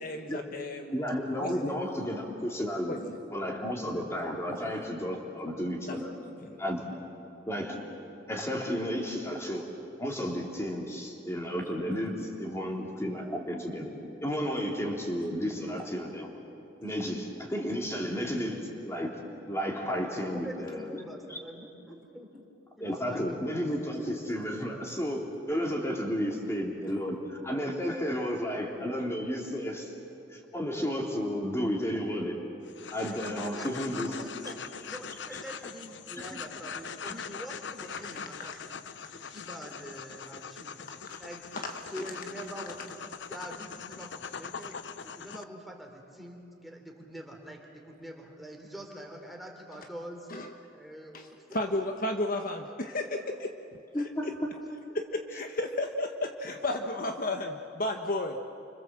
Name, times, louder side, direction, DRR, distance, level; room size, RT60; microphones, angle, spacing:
voice 1, 0.0-1.0 1.4-1.7 2.9-3.2 5.9-6.0 6.4-6.6 16.8-16.9 38.1-38.5 41.1-41.2 50.3-50.5 51.5-53.5 54.2-54.3 54.9-58.4, left 1 dB, 50° left, 4 dB, 1.3 m, -33 dB
voice 2, 0.9-2.9 3.3-6.1 6.6-7.0 7.5-7.8 8.3-9.7 10.0-13.9 14.2-16.3 16.8-19.2 19.5-21.0 21.3-21.4 22.8-29.9 30.3-32.4 32.9-34.1 36.3-36.4 53.9-54.3, equal, 15° left, 0 dB, 3.6 m, -32 dB
voice 3, 20.1-22.5 22.8-23.4 33.1-38.8 39.1-40.8 41.2-41.5 41.8-44.8 45.0-50.3 50.7-51.9, equal, ahead, 1 dB, 3.5 m, -45 dB
sound 1, 32.6-45.4, left 6 dB, 80° left, 0.8 m, -42 dB
30.0 x 25.5 x 7.7 m, 2.9 s
head